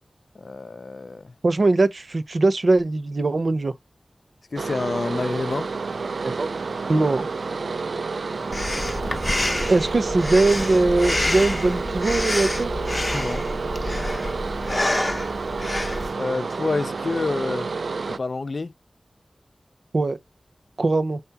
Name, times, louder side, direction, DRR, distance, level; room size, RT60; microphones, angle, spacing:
voice 1, 0.4-1.3 4.5-5.7 8.3-8.9 13.2-13.4 16.2-17.7 18.1-18.7, left 3 dB, 60° left, 0.4 m, -28 dB
voice 2, 1.4-3.7 6.2-6.5 6.9-7.3 9.7-12.7 19.9-20.2 20.8-21.2, right 2 dB, 60° right, 0.7 m, -21 dB
sound 1, 4.6-18.2, right 4 dB, 85° right, 0.3 m, -29 dB
Breathing, 8.5-16.1, left 1 dB, 25° left, 0.7 m, -27 dB
4.4 x 2.9 x 3.4 m
wide cardioid pair, 90°, 0 cm